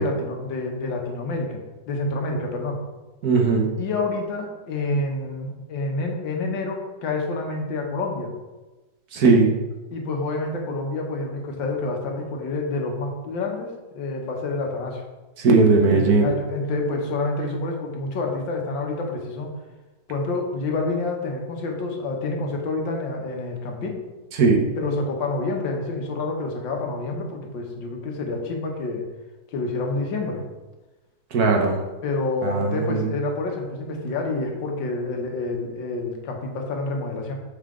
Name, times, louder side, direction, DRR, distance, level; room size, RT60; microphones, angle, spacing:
voice 1, 0.0-1.6 1.9-2.8 3.8-8.3 9.2-9.4 9.9-15.0 15.9-19.5 20.1-24.0 24.8-29.0 29.5-30.4 32.0-37.4, left 3 dB, 70° left, 2 dB, 1.8 m, -28 dB
voice 2, 3.2-3.7 9.1-9.5 15.4-16.3 24.4-24.7 31.3-31.8 32.4-33.0, right 4 dB, 55° right, 1 dB, 1.4 m, -18 dB
6.9 x 5.6 x 3.7 m, 1.2 s
omnidirectional pair, 2.1 m